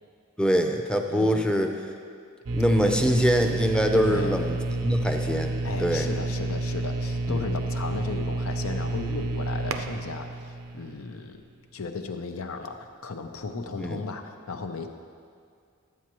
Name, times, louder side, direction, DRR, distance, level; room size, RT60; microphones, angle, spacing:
voice 1, 0.4-1.7 2.5-5.5 5.8-6.1 7.3-7.5 13.7-14.0, equal, 5° left, 4 dB, 0.5 m, -24 dB
voice 2, 1.1-1.5 3.9-4.4 5.6-11.4 11.7-14.9, left 4 dB, 80° left, 6 dB, 0.7 m, -35 dB
sound 1, 2.5-11.4, right 2 dB, 75° right, 0.6 m, -30 dB
13.0 x 8.5 x 3.0 m, 2.2 s
head